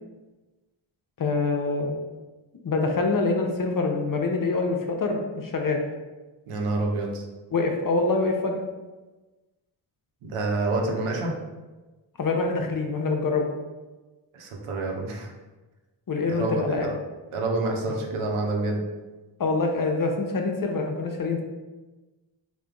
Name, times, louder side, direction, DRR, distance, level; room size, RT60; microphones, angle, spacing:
voice 1, 1.2-1.9 2.6-5.8 7.5-8.6 12.2-13.5 16.1-16.9 19.4-21.4, left 3 dB, 40° left, 3 dB, 0.6 m, -25 dB
voice 2, 6.5-7.2 10.2-11.3 14.3-15.3 16.3-16.9 17.3-18.8, right 2 dB, 80° right, 0 dB, 0.8 m, -27 dB
3.4 x 2.2 x 3.7 m, 1.2 s
cardioid pair, 50°, 50 cm